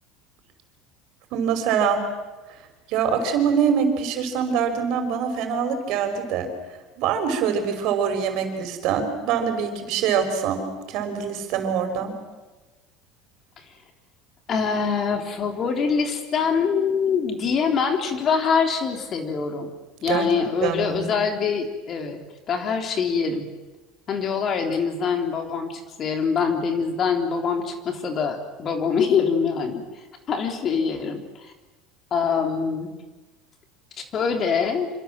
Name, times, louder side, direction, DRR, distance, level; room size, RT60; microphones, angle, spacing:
voice 1, 1.3-2.0 2.9-6.5 7.0-12.1 20.1-20.3 20.6-21.2, right 7 dB, 60° right, 6 dB, 5.5 m, -24 dB
voice 2, 14.5-19.7 20.0-22.2 22.5-23.5 24.1-29.8 30.3-31.5 32.1-32.9 34.0-34.9, left 6 dB, 35° left, 5 dB, 3.8 m, -24 dB
27.0 x 26.5 x 7.6 m, 1.2 s
cardioid pair, 140°, 0 cm